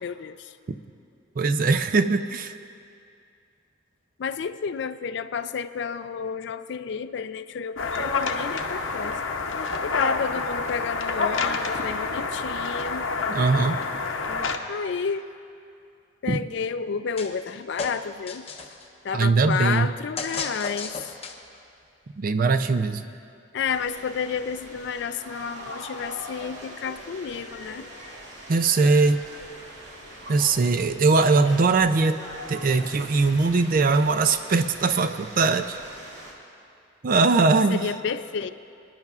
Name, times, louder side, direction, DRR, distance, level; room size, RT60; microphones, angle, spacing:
voice 1, 0.0-0.5 4.2-9.2 9.6-13.0 14.7-15.3 16.2-18.5 19.0-21.1 23.5-27.9 37.4-38.5, left 6 dB, 60° left, 12 dB, 0.4 m, -31 dB
voice 2, 1.4-2.5 13.3-13.8 16.3-16.4 19.1-19.9 22.2-23.0 28.5-29.2 30.3-32.2 32.5-35.8 37.0-37.8, right 3 dB, 45° right, 10 dB, 0.4 m, -21 dB
sound 1, 7.8-14.6, left 4 dB, 75° left, 0.7 m, -28 dB
sound 2, 17.2-17.5 17.8-18.9 20.2-21.6, left 4 dB, 30° left, 0.7 m, -34 dB
sound 3, 23.6-36.3, right 1 dB, 65° right, 2.2 m, -42 dB
28.5 x 10.5 x 2.4 m, 2.5 s
head